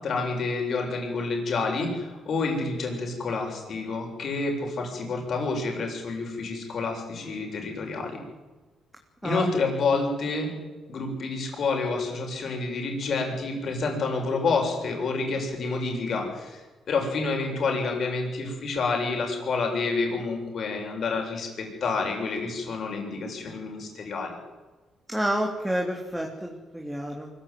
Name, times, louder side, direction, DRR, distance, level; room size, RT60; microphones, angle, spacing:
voice 1, 0.0-8.2 9.2-10.5 10.9-24.4, left 3 dB, 55° left, 2 dB, 7.2 m, -28 dB
voice 2, 25.1-27.3, equal, 5° right, 1 dB, 3.4 m, -29 dB
23.5 x 16.0 x 9.5 m, 1.2 s
cardioid pair, 90°, 0 cm